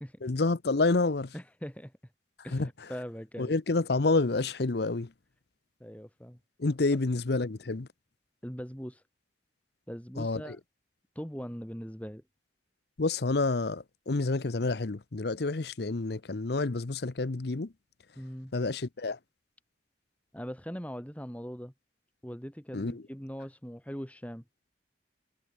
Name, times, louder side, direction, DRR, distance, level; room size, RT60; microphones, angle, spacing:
voice 1, 0.2-1.3 2.5-2.7 3.4-5.1 6.6-7.9 10.2-10.6 13.0-17.7 18.5-19.2 22.7-23.0, left 3 dB, 60° left, 0.8 m, -28 dB
voice 2, 1.3-1.9 2.4-3.6 5.8-6.4 8.4-9.0 9.9-10.6 11.1-12.2 18.2-18.5 20.3-21.7 22.2-24.4, equal, 10° left, 4.7 m, -41 dB
head